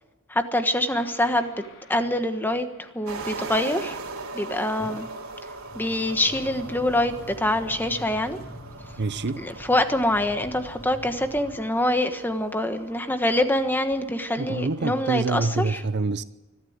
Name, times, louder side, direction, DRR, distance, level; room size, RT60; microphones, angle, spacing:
voice 1, 0.3-1.5 1.9-4.0 4.3-5.1 5.7-8.4 9.4-15.8, left 1 dB, 10° left, 1.3 m, -25 dB
sound 1, 0.9-4.1 4.8-11.6, left 1 dB, 60° left, 3.5 m, -45 dB
sound 2, 3.1-15.5, right 3 dB, 85° right, 2.9 m, -41 dB
voice 2, 9.0-9.4 14.4-16.2, right 3 dB, 55° right, 0.7 m, -26 dB
24.5 x 13.0 x 8.1 m
head